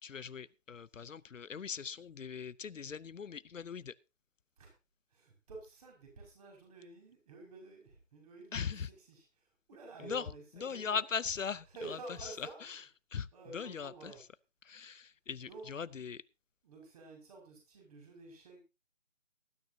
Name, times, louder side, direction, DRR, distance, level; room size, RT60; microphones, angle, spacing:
voice 1, 0.0-3.9 8.5-8.9 10.0-10.3 10.5-12.8 13.1-13.3 13.5-14.1 14.6-16.2, left 6 dB, 75° left, 0.7 m, -40 dB
voice 2, 5.1-10.4 10.7-11.0 11.7-12.8 13.3-14.2 15.4-15.7 16.6-18.6, right 3 dB, 30° right, 5.7 m, -50 dB
19.0 x 12.5 x 2.7 m
figure-of-eight pair, 155°, 39 cm